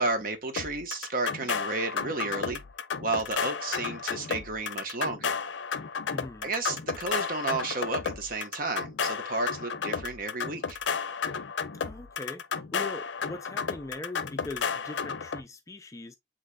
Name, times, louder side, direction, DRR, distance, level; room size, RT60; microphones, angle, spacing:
voice 1, 0.0-2.6 3.0-5.4 6.4-10.8, right 3 dB, 50° right, 1.0 m, -32 dB
sound 1, 0.6-15.4, left 6 dB, 70° left, 0.5 m, -33 dB
voice 2, 6.1-6.5 11.8-16.2, left 2 dB, 15° left, 0.4 m, -41 dB
7.8 x 2.9 x 2.2 m
head